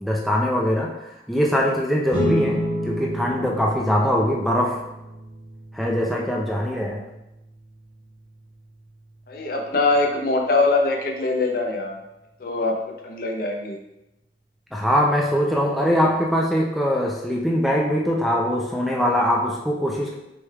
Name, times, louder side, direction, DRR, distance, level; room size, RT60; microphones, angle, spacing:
voice 1, 0.0-0.9 1.3-4.8 5.7-7.0 14.7-20.1, equal, ahead, -3 dB, 0.4 m, -22 dB
sound 1, 2.1-12.9, equal, 40° right, 1.2 m, -33 dB
voice 2, 9.3-12.0 12.4-13.8, left 3 dB, 55° left, 2 dB, 0.6 m, -23 dB
6.0 x 3.3 x 2.3 m, 0.93 s
head